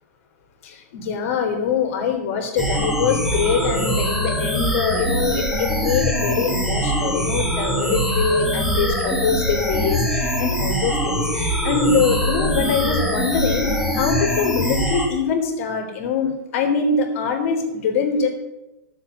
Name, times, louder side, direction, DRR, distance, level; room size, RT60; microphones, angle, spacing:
voice 1, 0.6-18.3, left 5 dB, 50° left, 3 dB, 2.9 m, -23 dB
sound 1, 2.6-15.1, equal, 5° right, 2.2 m, -23 dB
12.0 x 7.2 x 7.1 m, 1.0 s
hypercardioid pair, 150°, 9 cm